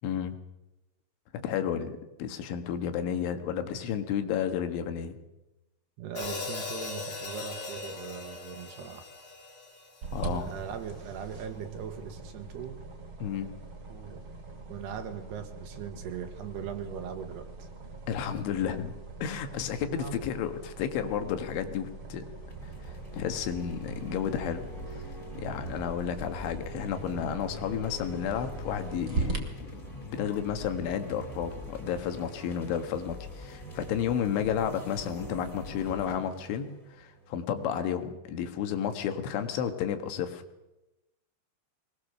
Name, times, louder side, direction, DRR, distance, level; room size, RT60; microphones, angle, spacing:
voice 1, 0.0-0.4 1.3-5.2 10.1-10.5 13.2-13.5 18.1-18.9 19.2-22.3 23.1-25.1 25.3-29.4 29.7-36.7 37.0-40.4, left 8 dB, 80° left, 8 dB, 4.0 m, -32 dB
voice 2, 6.0-9.0 10.2-12.8 13.9-14.2 14.7-17.7 19.8-20.2, right 7 dB, 70° right, 8 dB, 3.4 m, -40 dB
Hi-hat, 6.2-10.3, left 4 dB, 35° left, 4.7 m, -39 dB
sound 1, 10.0-29.4, right 4 dB, 35° right, 2.7 m, -41 dB
sound 2, 22.4-37.8, equal, 10° left, 4.1 m, -43 dB
23.0 x 20.5 x 6.8 m, 0.98 s
omnidirectional pair, 5.5 m